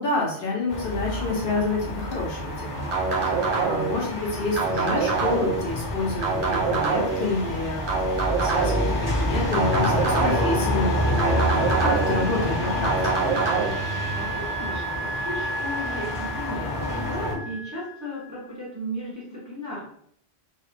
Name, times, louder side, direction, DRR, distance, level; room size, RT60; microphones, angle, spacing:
voice 1, 0.0-2.8 3.2-12.9 13.2-13.3, left 2 dB, 60° left, -2 dB, 0.7 m, -28 dB
sound 1, 0.7-17.3, left 1 dB, 20° left, 0.6 m, -28 dB
sound 2, 2.9-4.0 4.6-5.6 6.2-7.3 7.9-8.9 9.5-10.6 11.2-12.2 12.8-13.7, right 4 dB, 70° right, 0.8 m, -25 dB
Wind instrument woodwind instrument, 10.1-18.4, right 2 dB, 45° right, 0.9 m, -36 dB
voice 2, 14.1-19.9, equal, 20° right, -6 dB, 0.5 m, -35 dB
2.5 x 2.1 x 2.5 m, 0.66 s
omnidirectional pair, 1.2 m